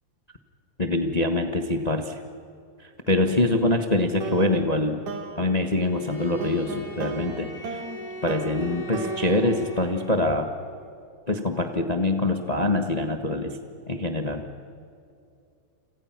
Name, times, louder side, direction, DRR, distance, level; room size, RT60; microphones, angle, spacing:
voice 1, 0.8-2.2 3.1-5.0 5.4-7.5 8.2-10.5 11.3-13.5 13.9-14.5, left 2 dB, 75° left, 5 dB, 0.3 m, -24 dB
sound 1, 4.2-10.6, right 3 dB, 75° right, 3.7 m, -37 dB
Bowed string instrument, 5.7-10.4, right 1 dB, 40° left, 5.3 m, -40 dB
29.5 x 27.0 x 6.0 m, 2.5 s
omnidirectional pair, 3.4 m